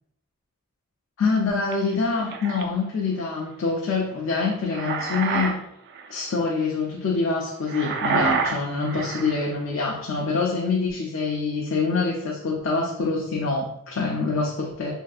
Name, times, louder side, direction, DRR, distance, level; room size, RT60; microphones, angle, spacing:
voice 1, 1.2-5.6 6.1-14.9, left 4 dB, 65° left, -2 dB, 0.5 m, -25 dB
sound 1, 1.7-2.6 4.4-5.6 5.9-6.2 7.7-9.4, right 5 dB, 50° right, 0.3 m, -27 dB
3.3 x 2.6 x 2.3 m, 0.76 s
head